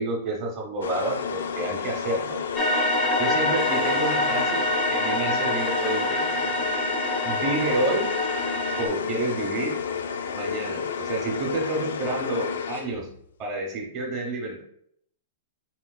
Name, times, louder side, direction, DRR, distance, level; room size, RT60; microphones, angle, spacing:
voice 1, 0.0-2.4 3.2-6.4 7.2-8.1 8.8-9.8 10.3-13.1 13.4-14.6, right 2 dB, 25° right, 0 dB, 0.7 m, -29 dB
sound 1, 0.8-13.2, left 6 dB, 85° left, 0.4 m, -31 dB
sound 2, 2.6-8.9, left 1 dB, 15° left, 0.4 m, -26 dB
4.3 x 4.1 x 2.3 m, 0.70 s
supercardioid pair, 180°, 0 cm